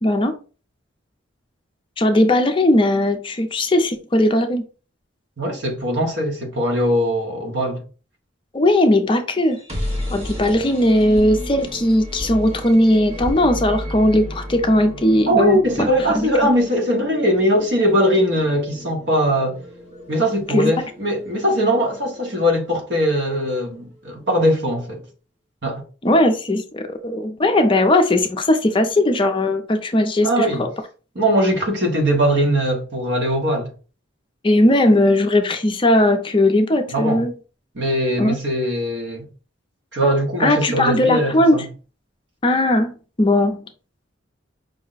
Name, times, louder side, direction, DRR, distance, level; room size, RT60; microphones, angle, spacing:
voice 1, 0.0-0.4 2.0-4.7 8.5-9.6 10.1-15.9 16.1-16.3 20.5-20.7 26.0-30.7 34.4-37.3 38.2-38.4 40.4-41.7 42.4-42.9 43.2-43.7, left 1 dB, 25° left, 0.5 m, -18 dB
voice 2, 5.4-7.8 15.3-19.6 20.1-25.0 25.6-25.8 30.2-30.7 31.1-33.7 36.9-37.2 37.7-39.3 39.9-41.6, equal, 60° right, 1.2 m, -20 dB
sound 1, 9.4-23.3, equal, 30° right, 1.3 m, -33 dB
5.3 x 2.1 x 3.9 m
head